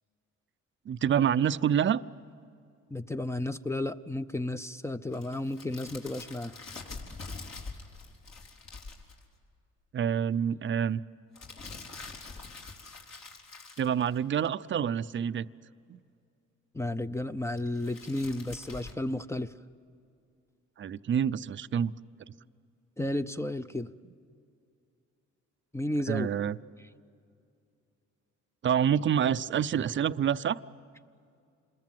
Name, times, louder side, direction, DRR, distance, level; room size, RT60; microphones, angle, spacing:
voice 1, 0.9-2.0 9.9-11.0 13.8-15.5 15.9-16.0 20.8-21.9 26.1-26.6 28.6-30.6, right 8 dB, 40° right, 14 dB, 0.6 m, -27 dB
voice 2, 2.9-6.6 16.7-19.5 23.0-23.9 25.7-26.3, left 1 dB, 10° left, 10 dB, 0.6 m, -33 dB
sound 1, 5.1-9.2 11.3-14.5 17.6-18.9, left 4 dB, 60° left, 3.8 m, -45 dB
27.5 x 21.5 x 7.7 m, 2.4 s
cardioid pair, 90°, 30 cm